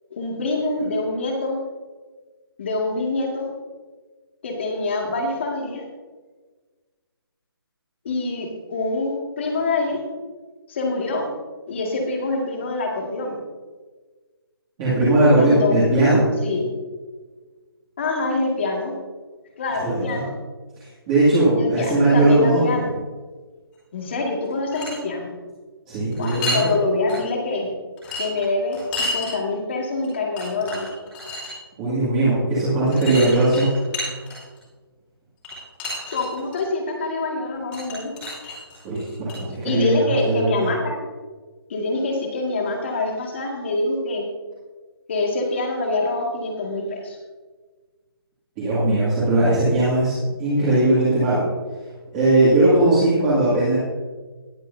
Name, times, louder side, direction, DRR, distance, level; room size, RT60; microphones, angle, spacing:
voice 1, 0.1-1.6 2.6-3.5 4.4-5.8 8.0-10.0 10.7-11.3 11.7-13.4 15.4-15.8 16.4-16.7 18.0-18.9 19.6-20.3 21.6-22.9 23.9-25.3 26.2-27.7 28.2-30.9 36.1-38.1 39.6-41.0 41.7-44.3 45.1-47.2 52.9-53.4, left 2 dB, 30° left, 1 dB, 2.0 m, -25 dB
voice 2, 14.8-16.2 19.8-20.2 21.1-22.6 25.9-26.6 31.8-33.7 38.8-40.7 48.6-51.4 52.1-53.8, right 2 dB, 15° right, -10 dB, 2.3 m, -19 dB
sound 1, 24.5-25.0 26.1-26.7 27.1-27.2 28.0-29.3 30.0-30.1 30.4-31.5 32.9-34.6 35.4-36.6 37.7-39.4, left 1 dB, 10° left, 2.9 m, -30 dB
19.5 x 8.1 x 2.7 m, 1.4 s
hypercardioid pair, 175°, 13 cm